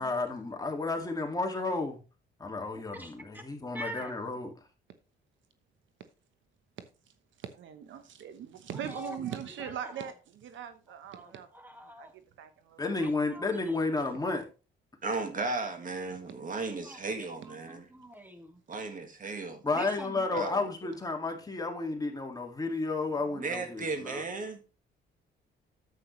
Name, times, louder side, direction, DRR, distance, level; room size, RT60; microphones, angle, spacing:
voice 1, 0.0-2.0 2.4-4.5 12.8-14.4 19.6-24.2, left 3 dB, 20° left, 2.1 m, -32 dB
voice 2, 2.9-3.4 3.7-4.1 8.9-10.1 11.2-12.1 13.0-14.2 16.8-18.6 19.8-20.3, equal, 10° right, 1.9 m, -45 dB
voice 3, 7.4-11.5 11.8-12.1 12.4-12.9, right 8 dB, 75° right, 1.1 m, -40 dB
voice 4, 15.0-17.9 18.7-19.8 20.3-20.6 23.3-24.6, right 3 dB, 40° right, 1.7 m, -35 dB
9.7 x 7.8 x 3.1 m
cardioid pair, 90°, 20 cm